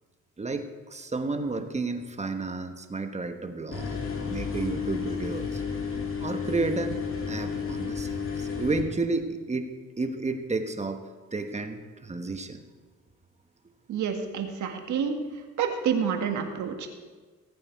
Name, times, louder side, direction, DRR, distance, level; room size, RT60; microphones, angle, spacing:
voice 1, 0.4-5.6 6.2-7.0 7.3-9.7 10.0-11.0 11.3-12.6, right 3 dB, 20° right, 7 dB, 1.2 m, -32 dB
sound 1, 3.7-8.8, left 6 dB, 45° left, 2.7 m, -32 dB
voice 2, 13.9-15.1 15.6-16.9, right 7 dB, 70° right, 4 dB, 1.8 m, -28 dB
18.5 x 8.6 x 4.7 m, 1.4 s
cardioid pair, 90°, 30 cm